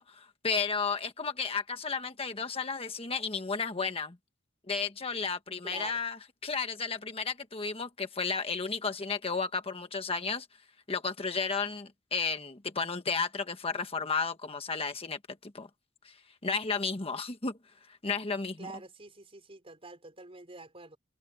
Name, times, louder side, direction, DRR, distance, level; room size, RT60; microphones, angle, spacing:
voice 1, 0.0-4.2 4.7-10.5 10.9-15.7 16.0-16.2 16.4-17.6 18.0-18.7, left 5 dB, 30° left, 1.3 m, -33 dB
voice 2, 5.6-6.0 18.6-21.0, right 3 dB, 30° right, 4.1 m, -46 dB
head